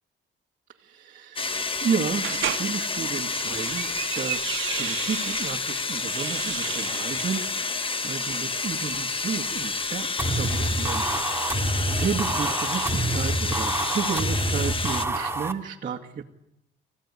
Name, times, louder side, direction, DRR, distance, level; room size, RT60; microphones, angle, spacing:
voice 1, 0.8-11.5 12.0-16.2, right 6 dB, 40° right, -3 dB, 2.2 m, -32 dB
sound 1, 1.4-15.1, left 4 dB, 25° left, 1.5 m, -29 dB
sound 2, 2.2-2.7 3.3-5.5 6.0-7.3, right 11 dB, 75° right, 1.6 m, -33 dB
sound 3, 10.2-15.5, right 2 dB, 10° right, 2.2 m, -27 dB
25.0 x 15.5 x 10.0 m, 0.82 s
cardioid pair, 90°, 20 cm